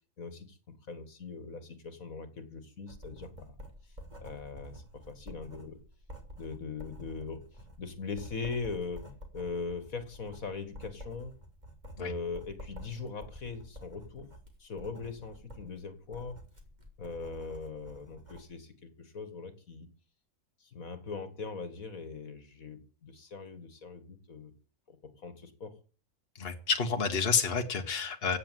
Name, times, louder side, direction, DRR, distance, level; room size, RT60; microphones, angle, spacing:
voice 1, 0.2-0.6 0.9-3.5 4.2-5.8 6.4-7.4 7.8-9.1 9.3-11.3 12.0-14.3 14.6-16.4 17.0-19.9 20.6-24.5 24.9-25.0 25.2-25.7, left 4 dB, 60° left, 11 dB, 2.3 m, -40 dB
Writing, 2.9-18.5, equal, 25° right, 3.3 m, -49 dB
voice 2, 26.4-28.4, left 5 dB, 40° left, 4 dB, 1.8 m, -29 dB
16.0 x 7.4 x 9.3 m, 0.40 s
omnidirectional pair, 1.6 m